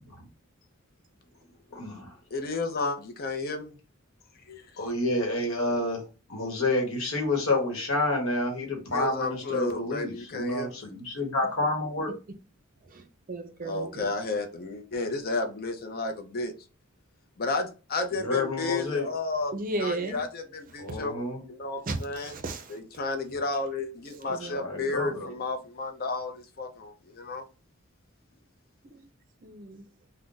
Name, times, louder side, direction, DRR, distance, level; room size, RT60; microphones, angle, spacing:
voice 1, 1.7-2.2 4.8-6.0 6.3-12.1 18.1-19.1 20.8-21.4 24.4-25.3, left 2 dB, 80° left, 1.1 m, -29 dB
voice 2, 2.3-3.7 4.5-4.8 8.9-10.8 13.6-16.5 17.4-19.5 19.8-21.1 21.4-22.3 22.7-27.4, left 3 dB, 45° left, 0.6 m, -32 dB
voice 3, 12.9-14.1 19.5-20.2 20.9-21.0 21.9-22.8 24.3-25.3 28.9-29.0 29.4-29.9, right 2 dB, 40° right, 0.5 m, -35 dB
2.4 x 2.2 x 3.8 m
head